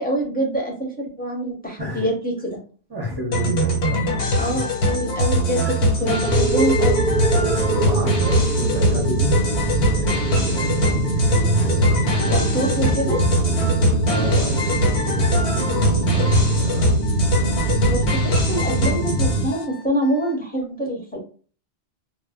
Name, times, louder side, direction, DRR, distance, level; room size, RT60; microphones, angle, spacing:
voice 1, 0.0-2.6 4.4-7.0 12.3-13.2 17.9-21.2, right 1 dB, 10° left, -2 dB, 0.7 m, -25 dB
voice 2, 2.9-4.0 4.4-4.7 5.6-5.8 7.4-9.4 10.0-12.9 14.1-17.0, left 1 dB, 25° right, 0 dB, 0.6 m, -31 dB
sound 1, 3.3-19.6, equal, 90° left, 1.1 m, -22 dB
Alarm, 4.6-20.4, left 10 dB, 70° left, 0.8 m, -42 dB
sound 2, 6.0-19.5, right 2 dB, 65° right, 0.7 m, -23 dB
2.2 x 2.0 x 3.5 m, 0.40 s
omnidirectional pair, 1.1 m